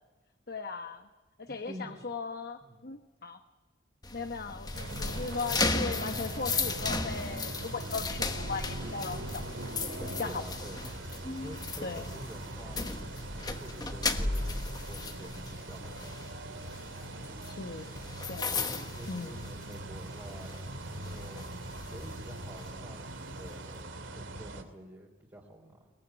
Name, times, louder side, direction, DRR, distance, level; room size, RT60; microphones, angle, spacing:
voice 1, 0.5-1.1 1.4-3.4 4.1-10.4 11.8-12.1 17.5-17.9 18.3-18.6 19.1-19.4, left 4 dB, 55° left, 7 dB, 1.2 m, -38 dB
voice 2, 1.5-2.1 2.6-2.9 10.2-11.0 11.4-13.0 13.3-16.6 17.8-18.0 19.0-20.6 20.9-21.5 21.8-25.9, equal, 15° right, -2 dB, 3.3 m, -48 dB
sound 1, 4.0-20.0 20.3-20.6 21.0-22.7, left 3 dB, 20° left, 1.3 m, -36 dB
sound 2, 4.7-24.6, right 2 dB, 80° right, 2.7 m, -42 dB
22.5 x 20.5 x 10.0 m, 1.3 s
head